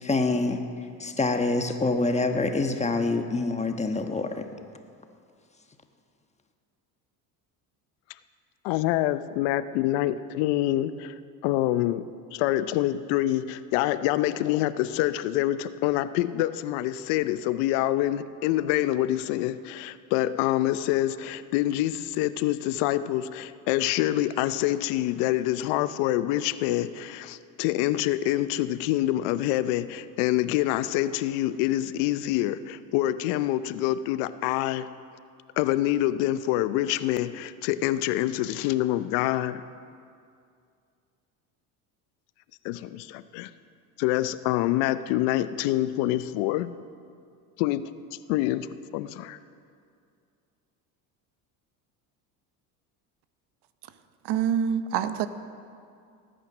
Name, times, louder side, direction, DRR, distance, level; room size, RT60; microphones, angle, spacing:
voice 1, 0.0-0.7 1.0-4.5, left 3 dB, 15° left, 6 dB, 1.3 m, -26 dB
voice 2, 8.6-34.9 35.6-39.6 42.6-43.5 44.0-46.7 47.6-47.9 48.3-48.7 48.9-49.4, left 14 dB, 75° left, 14 dB, 0.7 m, -26 dB
voice 3, 54.2-55.3, right 8 dB, 60° right, 12 dB, 0.9 m, -25 dB
19.0 x 9.1 x 6.0 m, 2.4 s
supercardioid pair, 90°, 44 cm